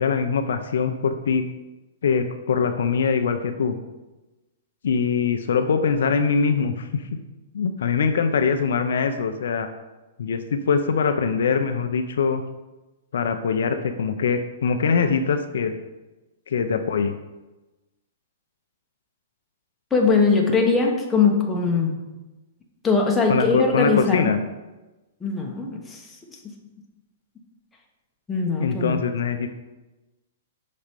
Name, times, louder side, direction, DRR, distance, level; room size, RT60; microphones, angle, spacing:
voice 1, 0.0-1.4 2.0-3.8 4.8-7.0 7.5-9.7 10.2-12.4 13.1-15.7 16.5-17.1 23.3-24.4 28.6-29.5, left 5 dB, 75° left, 7 dB, 0.6 m, -23 dB
voice 2, 19.9-22.0 22.8-24.3 25.2-26.2 28.3-29.0, left 4 dB, 10° left, 0 dB, 1.1 m, -21 dB
6.0 x 4.2 x 5.2 m, 1.1 s
hypercardioid pair, 135°, 0 cm